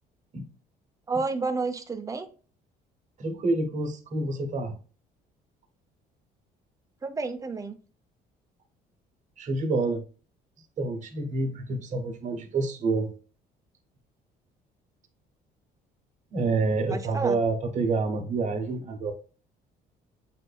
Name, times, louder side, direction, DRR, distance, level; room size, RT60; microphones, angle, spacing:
voice 1, 1.1-2.3 7.0-7.8 16.9-17.4, right 3 dB, 20° right, 0.6 m, -30 dB
voice 2, 3.2-4.7 9.4-10.0 10.8-13.1 16.3-19.1, right 3 dB, 45° right, 1.0 m, -28 dB
7.4 x 2.6 x 2.3 m
cardioid pair, 110°, 17 cm